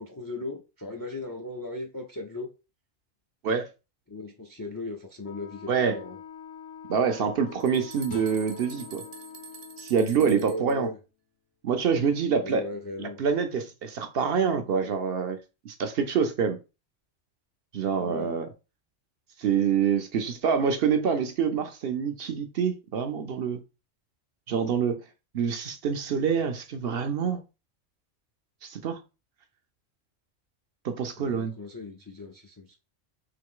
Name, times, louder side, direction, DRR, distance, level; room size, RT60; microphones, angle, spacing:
voice 1, 0.0-2.5 4.1-6.2 10.1-11.0 12.4-13.2 18.0-18.4 31.2-32.8, left 2 dB, 35° left, 0.3 m, -37 dB
Wind instrument woodwind instrument, 5.2-10.1, left 8 dB, 60° left, 1.1 m, -45 dB
voice 2, 6.9-9.0 9.8-10.9 11.6-12.7 13.0-15.4 15.6-16.6 17.7-18.5 19.4-23.6 24.5-25.0 25.3-27.4 28.6-29.0 30.8-31.5, right 6 dB, 60° right, 0.7 m, -26 dB
sound 1, 7.2-10.7, right 7 dB, 80° right, 1.0 m, -46 dB
sound 2, 8.1-11.3, left 5 dB, 90° left, 1.2 m, -46 dB
3.8 x 3.0 x 3.6 m
omnidirectional pair, 1.3 m